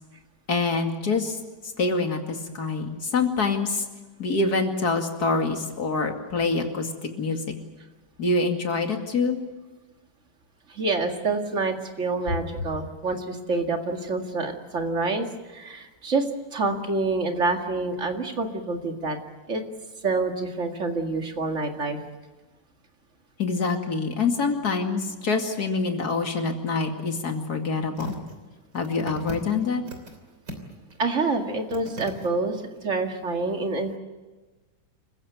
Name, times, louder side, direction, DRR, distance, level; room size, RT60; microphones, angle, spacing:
voice 1, 0.5-1.4 1.8-3.9 4.2-6.9 7.2-7.4 8.2-9.4 23.4-28.2 28.7-29.8, left 4 dB, 60° left, 4 dB, 2.9 m, -25 dB
voice 2, 10.7-19.2 19.5-19.6 20.0-22.0 31.0-32.6 32.8-34.0, right 3 dB, 45° right, 4 dB, 2.4 m, -27 dB
sound 1, 28.0-28.4 28.7-30.2 30.5-30.9 31.3-31.4 31.7-32.3 32.8-32.9, right 1 dB, 70° right, 3.8 m, -38 dB
28.0 x 15.5 x 9.4 m, 1.2 s
omnidirectional pair, 1.9 m